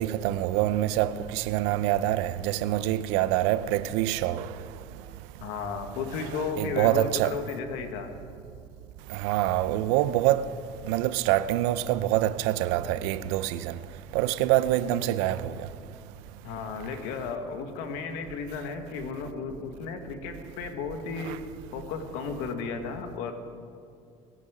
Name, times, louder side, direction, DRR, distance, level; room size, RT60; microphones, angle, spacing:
voice 1, 0.0-4.5 6.6-7.3 9.1-10.4 10.8-13.8 14.1-15.5 21.3-21.4, right 14 dB, 90° right, 0.6 m, -25 dB
voice 2, 5.4-8.1 16.4-21.4 21.7-23.3, left 5 dB, 85° left, 1.6 m, -34 dB
22.5 x 9.7 x 4.9 m
supercardioid pair, 105°, 15 cm